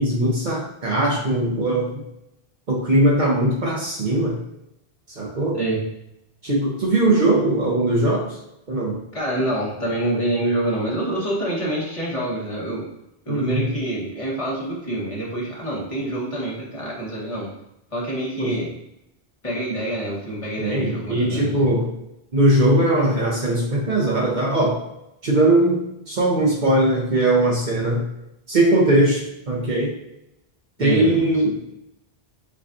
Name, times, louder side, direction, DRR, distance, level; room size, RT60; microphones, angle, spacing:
voice 1, 0.0-2.0 2.7-4.4 5.1-5.6 6.4-8.4 8.7-9.0 13.3-13.8 18.4-18.6 20.6-21.9 22.3-24.8 25.2-28.0 28.5-30.0 30.8-31.6, right 1 dB, 50° right, -2 dB, 0.9 m, -20 dB
voice 2, 9.1-12.9 13.2-17.5 17.9-18.7 19.4-21.7 30.8-31.2, right 1 dB, 35° left, -6 dB, 1.2 m, -26 dB
6.8 x 2.4 x 2.6 m, 0.83 s
omnidirectional pair, 1.1 m